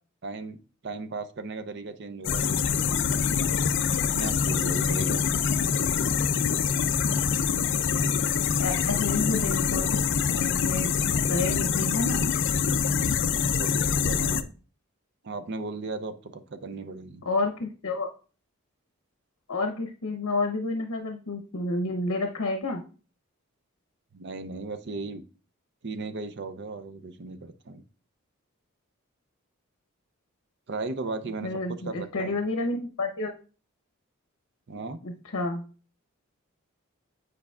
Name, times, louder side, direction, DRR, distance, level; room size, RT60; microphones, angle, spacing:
voice 1, 0.2-2.6 4.0-5.3 13.6-14.5 15.2-17.2 24.1-25.2 25.8-27.8 30.7-32.4 34.7-35.0, right 3 dB, 50° right, 10 dB, 0.5 m, -36 dB
sound 1, 2.2-14.4, left 6 dB, 55° left, 0.4 m, -25 dB
voice 2, 8.6-10.0 10.4-10.9 11.3-12.3 17.2-18.1 19.5-22.8 31.4-33.3 35.0-35.6, left 2 dB, 75° left, 4 dB, 0.8 m, -30 dB
8.7 x 4.7 x 2.3 m, 0.38 s
head